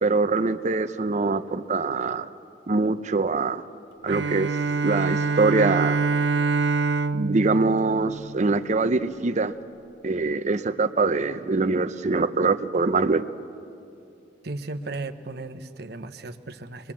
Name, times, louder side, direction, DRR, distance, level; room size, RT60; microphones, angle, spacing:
voice 1, 0.0-2.3 2.7-3.6 4.0-4.5 4.8-6.0 7.1-9.5 10.0-13.3, right 3 dB, 40° right, 12 dB, 0.6 m, -23 dB
Bowed string instrument, 4.1-8.8, right 4 dB, 85° right, 0.5 m, -25 dB
voice 2, 14.4-16.9, right 2 dB, 65° right, 8 dB, 0.9 m, -35 dB
23.0 x 21.0 x 7.3 m, 2.7 s
head